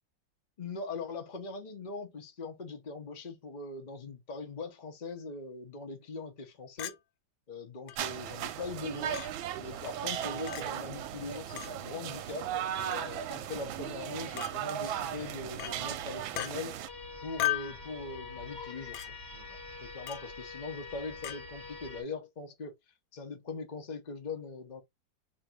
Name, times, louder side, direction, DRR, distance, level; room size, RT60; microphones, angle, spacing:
voice 1, 0.6-7.0 7.5-16.8 17.2-24.8, left 3 dB, 55° left, 0.5 m, -41 dB
Chink clink, 6.8-7.0 7.9-8.0 9.1-9.3 10.5-10.6 11.6-11.7 12.9-13.1 14.4-14.5 15.6-15.8 16.4-16.5 17.4-17.8 18.9-19.1 20.1-20.3 21.2-21.4, left 14 dB, 90° left, 1.4 m, -35 dB
sound 1, 8.0-16.9, right 10 dB, 85° right, 1.4 m, -37 dB
sound 2, 16.9-22.0, left 4 dB, 30° left, 1.2 m, -45 dB
3.1 x 2.5 x 4.3 m
omnidirectional pair, 2.1 m